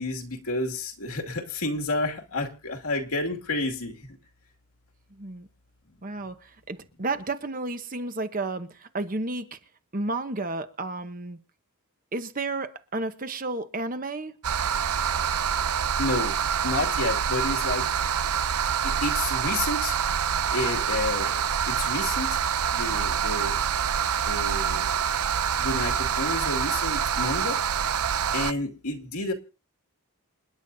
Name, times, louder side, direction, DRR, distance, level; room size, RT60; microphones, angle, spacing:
voice 1, 0.0-4.0 16.0-16.3 16.6-17.9 18.8-20.0 20.5-22.4 22.7-23.6 24.3-24.9 25.6-27.6 28.3-29.3, left 2 dB, 80° left, 2.4 m, -30 dB
voice 2, 5.1-5.5 6.0-9.6 9.9-11.4 12.1-14.3, right 2 dB, 40° right, 1.1 m, -32 dB
sound 1, 14.4-28.5, right 8 dB, 85° right, 0.6 m, -26 dB
28.0 x 10.0 x 2.7 m
head